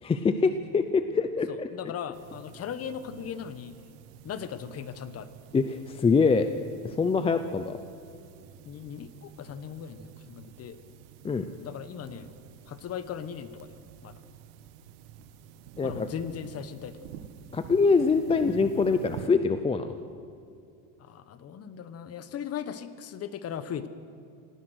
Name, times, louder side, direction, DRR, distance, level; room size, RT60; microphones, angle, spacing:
voice 1, 0.0-1.7 5.5-6.5 6.8-7.8 11.2-11.5 15.8-16.1 17.5-19.9, left 4 dB, 15° left, 9 dB, 0.5 m, -24 dB
voice 2, 1.5-3.8 4.2-5.3 7.3-7.4 8.6-10.8 11.6-12.3 12.7-14.2 15.8-17.0 21.0-23.9, left 8 dB, 35° left, 13 dB, 1.1 m, -38 dB
sound 1, 2.1-19.3, right 9 dB, 80° right, 1.6 m, -48 dB
27.0 x 17.5 x 6.3 m, 2.5 s
cardioid pair, 135°, 42 cm